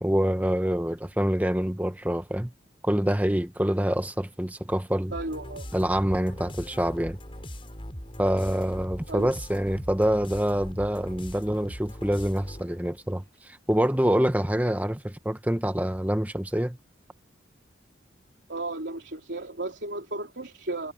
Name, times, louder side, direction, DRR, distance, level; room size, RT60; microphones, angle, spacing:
voice 1, 0.0-2.5 2.8-5.1 5.7-7.2 8.2-16.8, equal, 10° right, 0.9 m, -26 dB
sound 1, 5.1-12.8, equal, 30° left, 7.2 m, -40 dB
voice 2, 5.1-5.7 9.1-9.3 18.5-20.9, right 2 dB, 70° right, 3.6 m, -34 dB
head